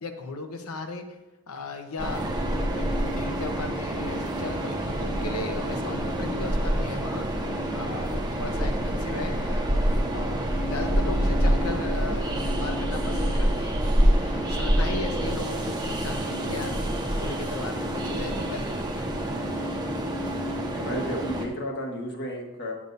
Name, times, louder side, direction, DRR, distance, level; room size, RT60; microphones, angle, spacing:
voice 1, 0.0-1.0 1.5-9.8 10.1-10.4 10.7-12.2 12.6-16.8 17.2-19.1, left 3 dB, 80° left, 5 dB, 0.9 m, -37 dB
Train, 2.0-21.5, right 1 dB, 20° right, 0.8 m, -27 dB
voice 2, 20.7-22.7, equal, 55° left, 1 dB, 1.3 m, -32 dB
9.6 x 7.2 x 2.6 m, 1.0 s
head